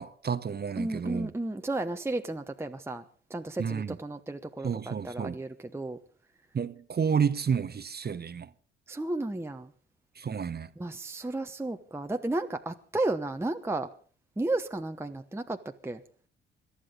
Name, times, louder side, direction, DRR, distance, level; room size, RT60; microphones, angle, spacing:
voice 1, 0.0-1.3 3.6-4.0 4.6-5.4 6.5-8.5 10.2-10.7, right 6 dB, 30° right, 0.9 m, -30 dB
voice 2, 0.8-3.0 3.3-6.0 8.9-9.7 10.8-13.9 14.4-15.6 15.8-16.0, right 2 dB, 5° right, 1.0 m, -33 dB
26.5 x 12.5 x 3.9 m
figure-of-eight pair, 45°, 33 cm